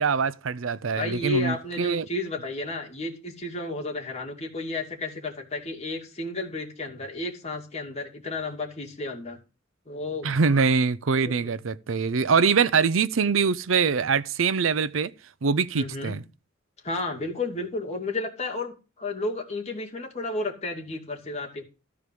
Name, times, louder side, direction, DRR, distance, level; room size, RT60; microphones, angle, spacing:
voice 1, 0.0-2.1 10.2-15.1 15.4-16.2, right 5 dB, 85° right, 0.6 m, -23 dB
voice 2, 1.0-9.4 9.9-10.3 11.2-11.5 15.7-16.2 16.8-21.6, left 2 dB, 35° left, 2.7 m, -32 dB
14.0 x 4.8 x 8.4 m
head